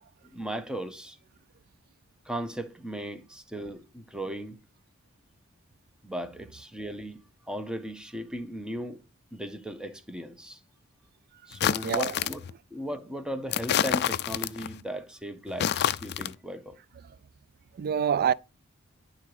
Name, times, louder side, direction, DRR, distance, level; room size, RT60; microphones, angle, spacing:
voice 1, 0.3-1.2 2.2-4.6 6.0-7.2 7.5-9.0 9.3-10.6 11.5-12.4 12.7-16.8, equal, 5° right, 0.8 m, -37 dB
sound 1, 11.5-12.5 13.5-14.7 15.5-16.3, left 9 dB, 50° left, 0.4 m, -28 dB
voice 2, 11.8-12.2 17.0-17.2 17.7-18.3, right 8 dB, 45° right, 0.3 m, -27 dB
11.0 x 3.9 x 4.8 m
head